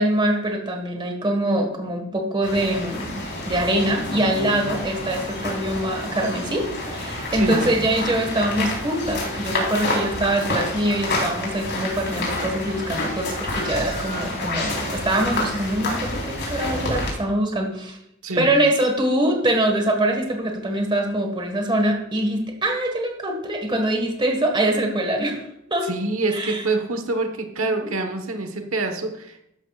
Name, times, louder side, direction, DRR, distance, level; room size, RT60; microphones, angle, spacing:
voice 1, 0.0-18.0 18.3-25.4 25.7-25.9 26.3-26.6 27.8-27.9, right 1 dB, 25° right, 3 dB, 1.6 m, -23 dB
sound 1, 2.4-17.1, left 1 dB, 60° left, 4.0 m, -28 dB
voice 2, 7.3-7.7 18.2-18.5 25.8-29.4, right 3 dB, 90° right, 6 dB, 1.2 m, -26 dB
13.5 x 11.5 x 2.4 m, 0.83 s
head